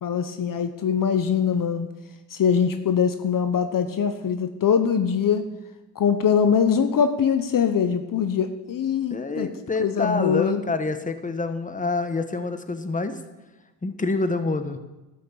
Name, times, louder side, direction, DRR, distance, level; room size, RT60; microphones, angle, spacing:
voice 1, 0.0-1.9 2.3-5.5 5.9-9.5 9.8-10.6, left 7 dB, 50° left, 8 dB, 1.0 m, -22 dB
voice 2, 9.1-13.2 13.8-14.8, left 3 dB, 20° left, 9 dB, 1.3 m, -27 dB
12.0 x 6.5 x 8.2 m, 1.1 s
supercardioid pair, 65°, 41 cm